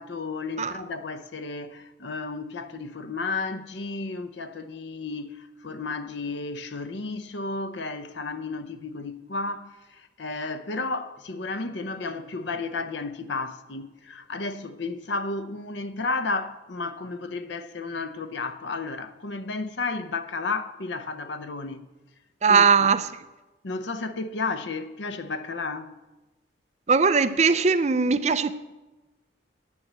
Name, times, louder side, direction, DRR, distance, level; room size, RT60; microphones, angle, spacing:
voice 1, 0.0-21.9 22.5-22.9 23.6-25.9, left 3 dB, 70° left, 0.7 m, -33 dB
voice 2, 22.4-23.1 26.9-28.5, right 5 dB, 35° right, 0.5 m, -20 dB
9.7 x 8.8 x 7.4 m
head